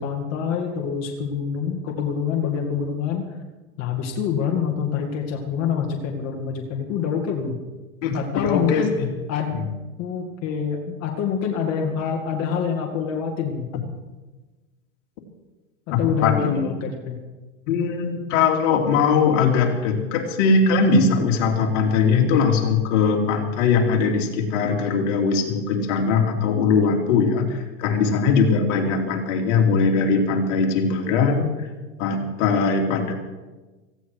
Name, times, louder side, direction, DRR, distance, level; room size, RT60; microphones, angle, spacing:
voice 1, 0.0-3.3 3.8-7.6 8.1-8.9 9.3-9.6 10.0-13.7 16.0-17.2, left 7 dB, 40° left, 0 dB, 2.2 m, -26 dB
voice 2, 8.0-9.1 9.5-9.6 15.9-16.7 17.7-31.7 32.0-33.1, left 5 dB, 65° left, 2 dB, 2.8 m, -20 dB
17.5 x 15.5 x 4.7 m, 1.2 s
supercardioid pair, 125°, 41 cm